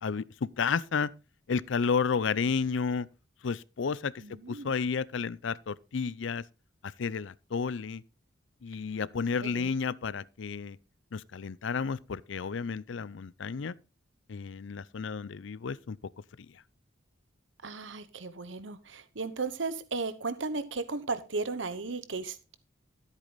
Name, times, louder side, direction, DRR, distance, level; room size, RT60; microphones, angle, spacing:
voice 1, 0.0-1.1 1.5-3.1 3.4-4.1 4.5-6.4 7.0-8.0 8.6-10.8 11.1-13.7 14.3-16.0, left 5 dB, 75° left, 0.5 m, -31 dB
voice 2, 4.2-4.7 9.4-9.7 17.6-22.5, right 3 dB, 75° right, 1.0 m, -35 dB
14.0 x 8.4 x 3.9 m
head